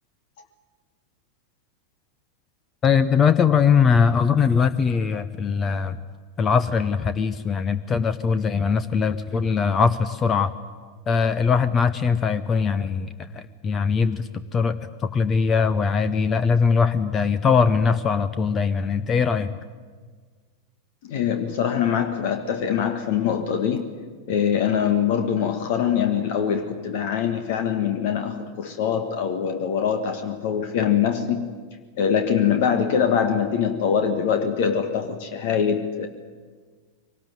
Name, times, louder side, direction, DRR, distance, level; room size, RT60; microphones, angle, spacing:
voice 1, 2.8-6.0 6.4-10.5 11.1-14.8 15.1-19.5, left 6 dB, 25° left, 14 dB, 0.9 m, -21 dB
voice 2, 21.0-23.9 24.3-31.4 32.0-36.1, left 8 dB, 50° left, 8 dB, 1.5 m, -23 dB
23.5 x 19.0 x 9.3 m, 1.5 s
figure-of-eight pair, 90°, 0 cm